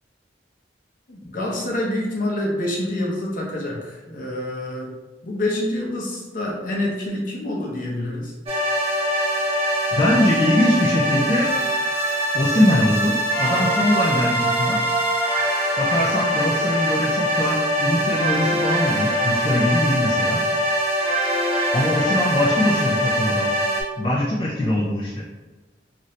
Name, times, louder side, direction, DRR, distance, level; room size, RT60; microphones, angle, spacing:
voice 1, 1.1-4.9 5.2-8.3, left 1 dB, 45° left, -3 dB, 0.7 m, -27 dB
sound 1, 8.5-23.8, right 1 dB, 30° right, 0.7 m, -22 dB
voice 2, 9.9-11.5 12.3-14.8 15.8-20.4 21.7-23.5 24.0-25.2, left 1 dB, 25° left, -5 dB, 0.3 m, -22 dB
2.7 x 2.5 x 3.1 m, 1.2 s
head